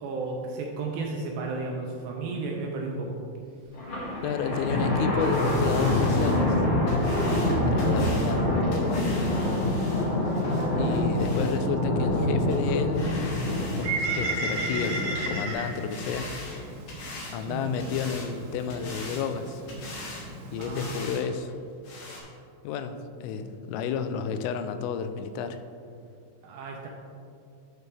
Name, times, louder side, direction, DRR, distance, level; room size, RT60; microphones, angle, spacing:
voice 1, 0.0-3.2 7.2-7.5 17.4-17.6 20.6-21.0 26.4-26.9, right 3 dB, 80° right, 0 dB, 2.6 m, -33 dB
Thunder, 3.7-15.5, left 1 dB, 45° left, 2.2 m, -26 dB
voice 2, 4.2-6.6 7.7-9.3 10.8-13.5 13.8-16.6 17.3-19.6 20.5-21.5 22.6-25.6, left 6 dB, 90° left, 9 dB, 3.2 m, -31 dB
sound 1, 5.2-11.6 12.1-12.2 12.5-12.6 12.9-13.9 14.1-15.3 15.6-17.4 17.8-18.3 18.7-19.2 19.7-20.3 20.6-21.2 21.5-21.6 21.8-22.2, left 2 dB, 60° left, 2.2 m, -41 dB
Bird, 13.6-20.9, right 2 dB, 65° right, 1.9 m, -35 dB
11.0 x 6.8 x 3.3 m, 2.4 s
omnidirectional pair, 5.6 m